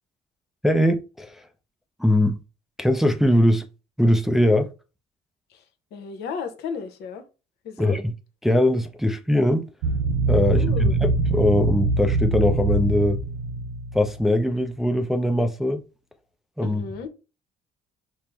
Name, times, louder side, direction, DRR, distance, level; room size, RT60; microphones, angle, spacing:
voice 1, 0.6-1.4 2.0-2.4 2.8-3.7 4.0-4.7 7.8-8.0 8.4-9.7 10.3-13.2 13.9-15.8 16.6-16.8, left 1 dB, ahead, 0.4 m, -21 dB
voice 2, 5.9-7.2 7.6-8.0 10.4-11.0 16.6-17.1, left 6 dB, 70° left, 0.8 m, -33 dB
sound 1, 9.8-14.5, right 3 dB, 90° right, 0.5 m, -24 dB
4.4 x 2.0 x 3.4 m
cardioid pair, 95°, 18 cm